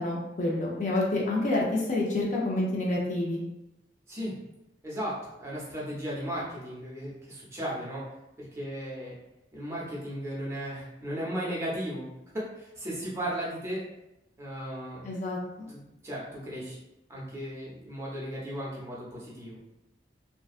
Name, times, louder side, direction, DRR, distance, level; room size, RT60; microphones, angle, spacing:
voice 1, 0.0-3.4 15.0-15.7, left 2 dB, 45° left, -3 dB, 0.4 m, -28 dB
voice 2, 4.8-8.0 8.4-9.2 9.5-12.1 12.3-13.8 14.4-15.1 15.7-16.8 17.1-19.6, equal, 15° right, -7 dB, 0.6 m, -36 dB
2.5 x 2.2 x 2.3 m, 0.91 s
head